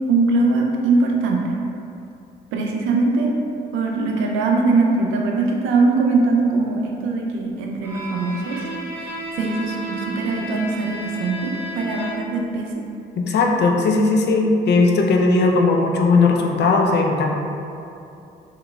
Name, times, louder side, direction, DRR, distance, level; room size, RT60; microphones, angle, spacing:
voice 1, 0.1-1.5 2.5-3.4 3.7-8.6 9.0-12.8, right 3 dB, 90° right, 0 dB, 0.5 m, -21 dB
Bowed string instrument, 7.8-12.5, equal, 10° right, 0.9 m, -33 dB
voice 2, 13.2-17.3, left 3 dB, 60° left, 1 dB, 0.5 m, -17 dB
3.7 x 3.0 x 2.3 m, 2.7 s
supercardioid pair, 70°, 20 cm